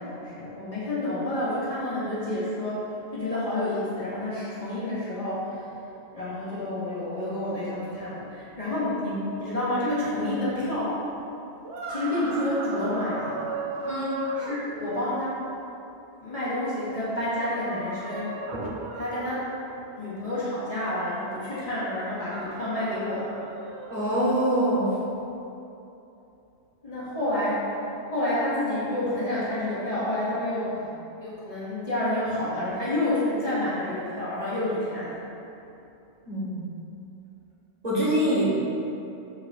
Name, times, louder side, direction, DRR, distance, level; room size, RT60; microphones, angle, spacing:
voice 1, 0.0-2.9 3.1-5.7 6.1-11.0 11.9-13.5 14.4-15.4 16.2-18.4 19.0-19.5 19.9-23.4 26.8-27.6 28.1-30.9 31.2-35.2, left 1 dB, 35° left, -11 dB, 1.5 m, -29 dB
sound 1, 11.6-14.6 17.3-19.4 22.0-24.1, right 2 dB, 90° right, 1.0 m, -36 dB
voice 2, 13.8-14.2 18.5-18.6 23.9-25.0 36.2-36.6 37.8-38.5, right 1 dB, 40° right, -10 dB, 1.6 m, -24 dB
6.6 x 6.0 x 2.5 m, 2.9 s
omnidirectional pair, 1.1 m